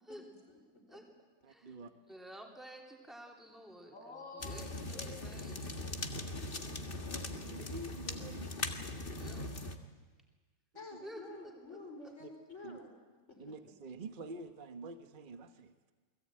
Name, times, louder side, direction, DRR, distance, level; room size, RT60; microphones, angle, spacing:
voice 1, 1.4-1.9 7.4-8.6 10.9-11.0 12.2-12.3 12.6-12.8 13.4-15.9, right 2 dB, 35° right, 7 dB, 1.3 m, -47 dB
voice 2, 2.1-4.1 4.5-5.7 9.1-9.5 11.0-11.2 11.7-11.8, equal, ahead, 1 dB, 3.2 m, -51 dB
voice 3, 3.9-6.5, left 3 dB, 75° left, -1 dB, 8.1 m, -52 dB
sound 1, 4.4-9.8, left 2 dB, 40° left, 1.9 m, -40 dB
voice 4, 10.7-12.9 13.3-13.4, left 2 dB, 55° left, 3 dB, 5.3 m, -49 dB
29.0 x 20.5 x 8.9 m, 1.4 s
omnidirectional pair, 1.5 m